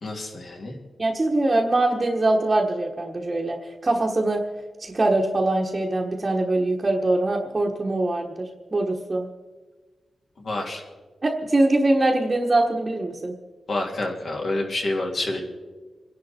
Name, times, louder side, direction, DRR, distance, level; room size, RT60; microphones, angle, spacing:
voice 1, 0.0-0.7 10.4-10.8 13.7-15.4, left 2 dB, 50° left, 0 dB, 2.9 m, -28 dB
voice 2, 1.0-4.4 4.8-9.3 11.2-13.3, right 2 dB, 25° right, -2 dB, 1.2 m, -23 dB
26.5 x 11.0 x 4.3 m, 1.3 s
wide cardioid pair, 140°, 0 cm